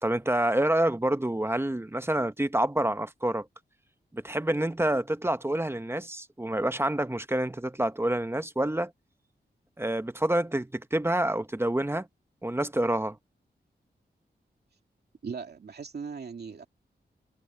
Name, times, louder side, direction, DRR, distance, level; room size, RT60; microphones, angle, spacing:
voice 1, 0.0-3.5 4.1-8.9 9.8-12.1 12.4-13.2, right 1 dB, 15° right, 0.9 m, -27 dB
voice 2, 15.2-16.7, right 5 dB, 65° right, 2.5 m, -38 dB
wide cardioid pair, 85°, 18 cm